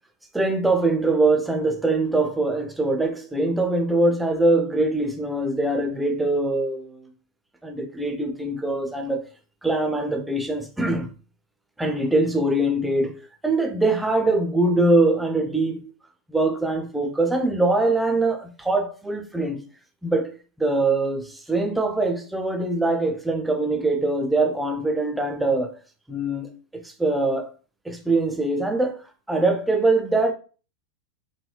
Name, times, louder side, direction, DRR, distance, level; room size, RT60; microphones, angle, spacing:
voice 1, 0.3-7.1 7.6-9.3 9.6-11.1 11.8-15.9 16.3-19.7 20.0-20.3 20.6-25.8 26.1-27.5 27.9-29.0 29.3-30.3, right 2 dB, 5° right, 0.4 m, -23 dB
3.0 x 2.7 x 2.2 m
figure-of-eight pair, 90°, 0 cm